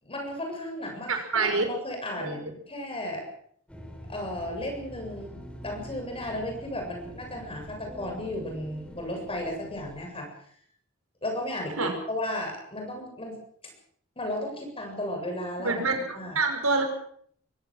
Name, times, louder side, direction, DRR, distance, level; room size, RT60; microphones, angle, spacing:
voice 1, 0.0-3.3 4.1-5.3 5.6-10.3 11.2-13.7 14.2-15.8 16.2-16.4, left 1 dB, 25° left, 3 dB, 7.5 m, -34 dB
voice 2, 1.1-1.7 2.2-2.3 11.8-11.9 15.6-16.8, right 3 dB, 80° right, 4 dB, 6.1 m, -26 dB
sound 1, 3.7-10.1, equal, 5° left, 3.8 m, -45 dB
23.0 x 17.0 x 7.6 m, 0.63 s
head